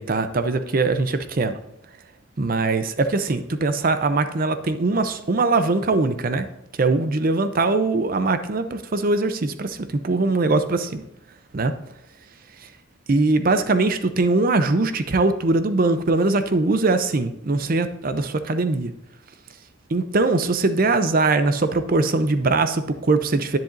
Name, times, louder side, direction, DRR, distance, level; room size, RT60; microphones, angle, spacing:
voice 1, 0.0-1.6 2.4-6.5 6.7-11.0 11.5-11.8 12.6-12.7 13.1-18.9 19.9-23.6, right 3 dB, 40° right, 10 dB, 0.5 m, -21 dB
10.5 x 10.0 x 2.6 m, 0.80 s
head